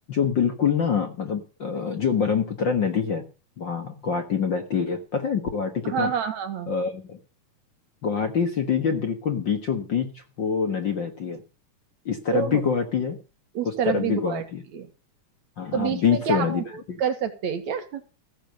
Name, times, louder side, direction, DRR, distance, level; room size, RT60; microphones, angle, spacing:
voice 1, 0.1-3.2 3.6-6.1 6.7-7.2 8.0-10.1 10.4-11.4 12.1-13.2 13.6-14.6 15.6-17.0, left 6 dB, 45° left, 5 dB, 1.7 m, -25 dB
voice 2, 5.8-6.7 12.3-12.6 13.5-14.4 14.7-14.9 15.7-18.0, right 7 dB, 65° right, 7 dB, 2.7 m, -28 dB
15.5 x 7.5 x 6.4 m, 0.33 s
omnidirectional pair, 3.6 m